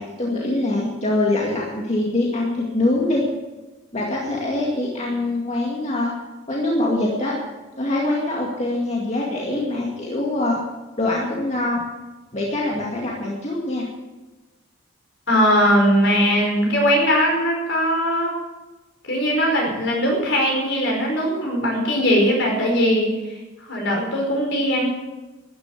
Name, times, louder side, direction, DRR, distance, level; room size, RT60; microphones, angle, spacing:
voice 1, 0.0-3.2 3.9-6.1 6.5-7.3 7.8-10.6 11.0-11.8 12.3-13.9, left 2 dB, 35° left, -3 dB, 2.2 m, -23 dB
voice 2, 15.3-18.3 19.0-23.4 23.7-24.9, equal, 60° left, 0 dB, 5.0 m, -20 dB
13.0 x 10.5 x 8.5 m, 1.2 s
head